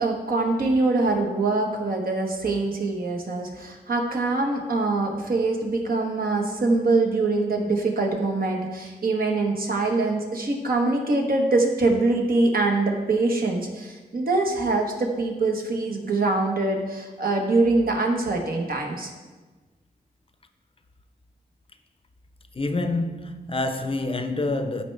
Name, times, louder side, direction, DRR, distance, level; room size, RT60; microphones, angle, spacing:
voice 1, 0.0-19.1, right 3 dB, 70° right, 1.2 m, -24 dB
voice 2, 22.5-24.8, left 2 dB, 35° left, 0.6 m, -27 dB
12.0 x 4.5 x 3.3 m
wide cardioid pair, 90°, 16 cm